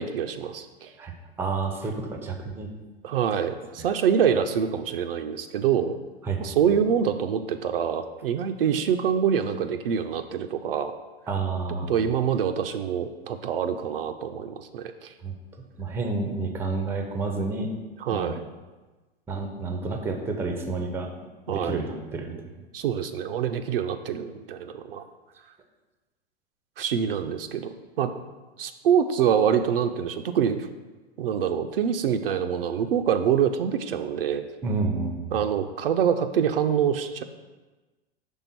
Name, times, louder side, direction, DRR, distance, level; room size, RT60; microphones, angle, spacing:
voice 1, 0.0-0.9 3.0-6.0 6.4-10.9 11.9-15.1 18.0-18.4 21.5-21.8 22.7-25.0 26.8-28.1 28.6-30.7 31.2-34.5 35.3-37.2, right 8 dB, 60° right, 8 dB, 0.5 m, -25 dB
voice 2, 1.0-2.7 3.8-3.9 6.2-6.6 11.3-11.9 15.2-15.3 15.8-17.7 18.1-18.4 19.3-21.1 21.5-22.4 34.6-35.4, right 3 dB, 5° right, 3 dB, 0.5 m, -30 dB
5.4 x 3.5 x 5.8 m, 1.2 s
figure-of-eight pair, 95°, 32 cm